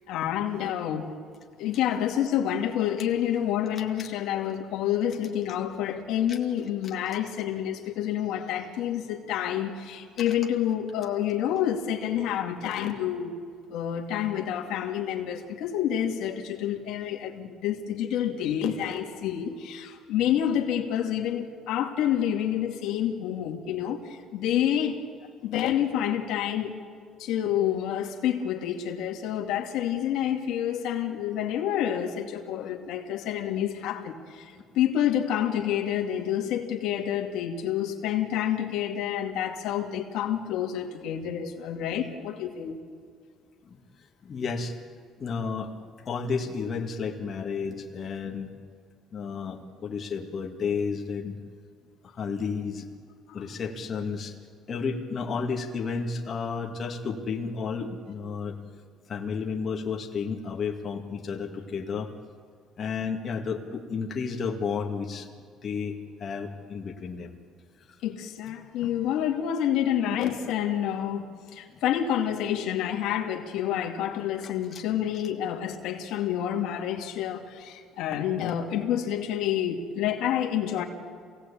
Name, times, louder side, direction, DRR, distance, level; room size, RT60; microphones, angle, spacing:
voice 1, 0.1-1.1 1.6-13.4 13.7-25.0 25.4-26.8 27.2-42.8 53.3-53.5 68.0-80.8, left 10 dB, 80° left, 2 dB, 2.4 m, -28 dB
voice 2, 44.2-44.8 45.2-45.7 46.0-48.5 49.1-51.3 52.0-52.9 53.3-54.3 54.7-58.6 59.1-62.1 62.8-65.3 65.6-67.3 67.8-68.0 68.8-68.9 71.7-71.8 74.4-74.8, left 5 dB, 40° left, 2 dB, 2.3 m, -32 dB
26.5 x 18.0 x 8.5 m, 2.1 s
cardioid pair, 115°, 0 cm